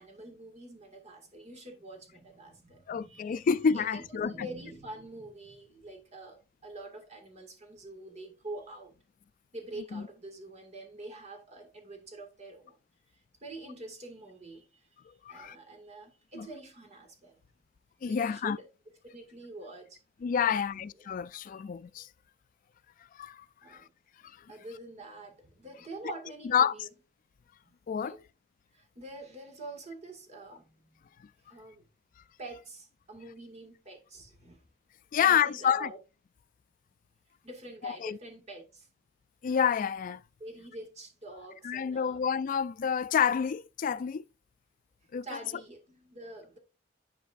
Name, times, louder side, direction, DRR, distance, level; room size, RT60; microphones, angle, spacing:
voice 1, 0.0-3.5 3.7-8.9 9.5-12.8 13.1-14.9 15.3-17.4 18.1-18.7 19.1-20.0 20.5-20.9 21.5-21.7 23.6-23.9 24.5-26.9 27.6-27.7 28.0-28.2 28.7-31.0 31.5-31.9 32.4-34.6 35.2-36.0 37.4-38.9 40.4-42.2 45.2-46.6, right 2 dB, 40° right, 1.9 m, -46 dB
voice 2, 2.9-4.5 9.9-10.0 15.3-15.6 16.4-16.5 18.0-18.6 20.2-22.1 23.1-23.5 23.7-23.8 26.0-26.1 26.4-26.7 27.9-28.2 35.1-35.9 37.8-38.2 39.4-40.2 41.6-44.2 45.1-45.3, left 7 dB, 45° left, 0.3 m, -28 dB
10.5 x 4.7 x 2.5 m
head